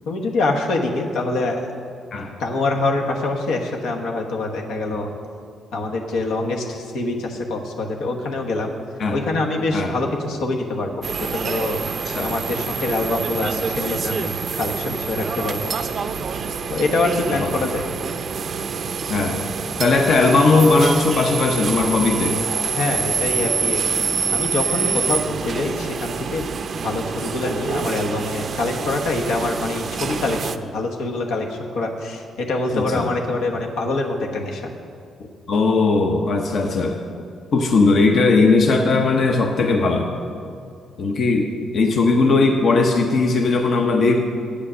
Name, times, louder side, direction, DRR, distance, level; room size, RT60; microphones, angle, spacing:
voice 1, 0.1-1.7 2.4-5.1 5.7-8.7 9.1-11.8 12.2-15.7 16.7-17.8 22.7-23.8 24.3-26.5 26.8-34.7, left 2 dB, 85° left, 1 dB, 1.2 m, -25 dB
sound 1, 11.0-30.6, right 6 dB, 50° right, 0.4 m, -26 dB
voice 2, 19.1-19.5 19.8-22.4 32.7-33.1 35.5-37.0 37.5-40.1 41.0-44.2, left 3 dB, 60° left, 2 dB, 0.8 m, -18 dB
8.5 x 8.4 x 6.2 m, 2.3 s
cardioid pair, 85°, 0 cm